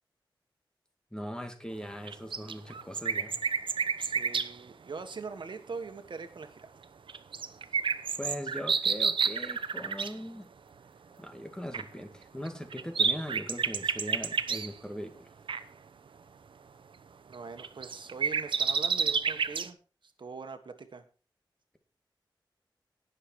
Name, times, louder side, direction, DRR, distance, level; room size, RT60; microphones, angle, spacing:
voice 1, 1.1-3.4 8.2-10.5 11.2-15.3, equal, 10° left, 6 dB, 2.3 m, -40 dB
sound 1, 2.1-4.5 7.1-10.1 11.7-11.8 12.5-14.7 15.5-15.6 17.3-19.7, right 5 dB, 85° right, 0.8 m, -30 dB
voice 2, 4.0-6.7 17.3-19.8 20.0-21.0, right 4 dB, 70° right, 8 dB, 1.5 m, -42 dB
18.0 x 6.8 x 4.6 m, 0.34 s
wide cardioid pair, 85°, 8 cm